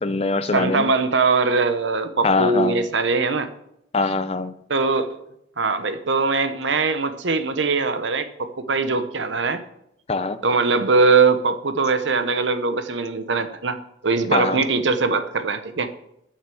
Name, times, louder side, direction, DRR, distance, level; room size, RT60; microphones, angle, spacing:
voice 1, 0.0-0.9 2.2-2.9 3.9-4.5 10.1-10.4 14.3-14.6, left 3 dB, 35° left, 12 dB, 0.6 m, -23 dB
voice 2, 0.5-3.5 4.7-5.1 5.6-9.6 10.4-13.8 14.0-15.9, right 4 dB, 85° right, 10 dB, 0.9 m, -21 dB
9.1 x 6.6 x 7.0 m, 0.77 s
head